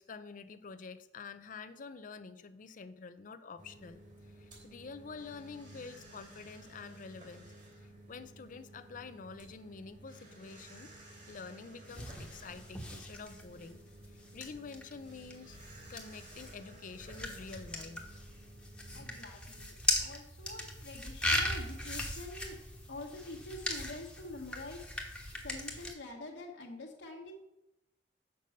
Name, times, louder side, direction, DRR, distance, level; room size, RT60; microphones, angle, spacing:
voice 1, 0.0-4.0 4.3-7.5 7.8-10.9 11.3-13.8 14.1-15.6 15.9-18.1 18.9-19.0, left 4 dB, 45° left, 10 dB, 0.5 m, -48 dB
sound 1, 3.6-19.2, right 1 dB, 50° right, 3.2 m, -54 dB
sound 2, 11.9-25.9, left 1 dB, 5° left, 1.2 m, -39 dB
voice 2, 18.9-22.6 22.9-24.9 25.4-27.3, left 2 dB, 70° left, 1 dB, 1.3 m, -46 dB
6.7 x 5.4 x 6.4 m, 0.87 s
head